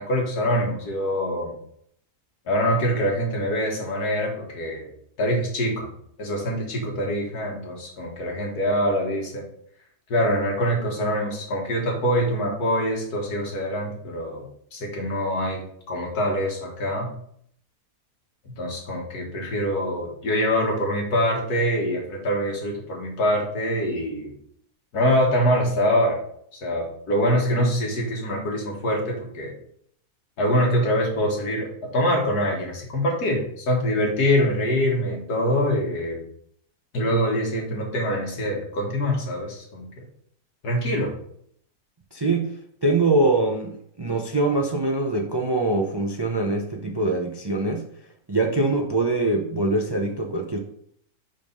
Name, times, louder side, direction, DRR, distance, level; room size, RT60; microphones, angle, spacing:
voice 1, 0.0-1.5 2.5-4.9 5.2-5.9 6.2-9.4 10.1-14.4 14.7-17.1 18.5-24.3 24.9-26.2 26.5-29.5 30.4-36.2 36.9-40.0 40.6-41.1, equal, 85° left, 0 dB, 2.2 m, -24 dB
voice 2, 42.1-42.5 42.8-47.8 48.3-50.6, right 2 dB, 35° right, 2 dB, 0.4 m, -23 dB
5.3 x 5.2 x 5.3 m, 0.66 s
omnidirectional pair, 1.6 m